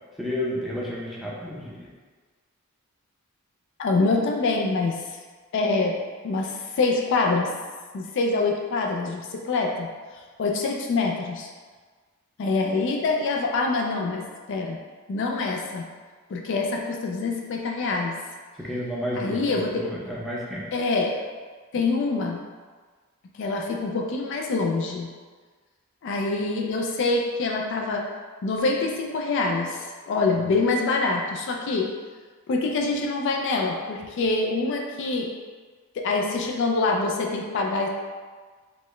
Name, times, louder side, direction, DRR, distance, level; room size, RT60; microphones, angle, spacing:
voice 1, 0.2-1.9 18.6-20.6, left 1 dB, ahead, -6 dB, 0.5 m, -31 dB
voice 2, 3.8-4.9 5.5-5.9 6.2-7.5 7.9-9.9 10.4-11.5 12.4-14.8 15.1-15.9 16.3-18.1 19.2-19.9 20.7-21.3 21.7-22.4 23.4-25.1 26.0-28.1 28.4-31.9 32.5-35.3 36.0-37.9, left 3 dB, 55° left, 1 dB, 0.3 m, -25 dB
4.1 x 2.1 x 3.1 m, 1.5 s
head